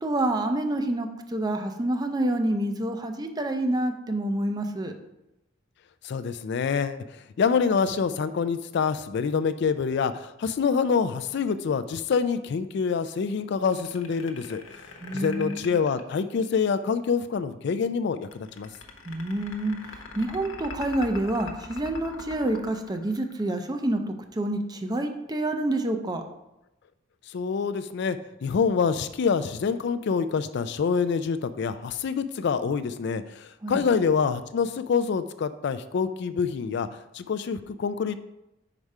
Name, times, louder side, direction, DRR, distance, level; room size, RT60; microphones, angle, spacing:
voice 1, 0.0-4.9 15.0-15.7 19.1-26.2 33.6-33.8, right 1 dB, 20° right, 6 dB, 0.5 m, -28 dB
voice 2, 6.0-14.9 15.1-18.7 27.3-36.9 37.1-38.2, left 5 dB, 55° left, 11 dB, 0.3 m, -26 dB
sound 1, 13.6-16.8 18.2-23.7, left 3 dB, 85° left, 1.0 m, -42 dB
4.9 x 4.7 x 5.4 m, 0.91 s
head